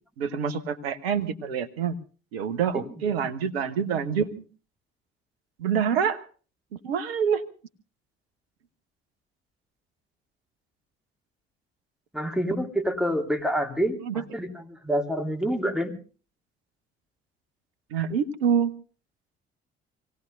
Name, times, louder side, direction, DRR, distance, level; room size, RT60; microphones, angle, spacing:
voice 1, 0.2-2.0 2.3-4.4 5.6-6.2 6.8-7.4 14.0-14.2 17.9-18.7, right 7 dB, 70° right, 12 dB, 1.2 m, -26 dB
voice 2, 12.1-15.9, equal, ahead, 4 dB, 2.8 m, -27 dB
27.0 x 17.5 x 2.7 m, 0.38 s
figure-of-eight pair, 50°, 31 cm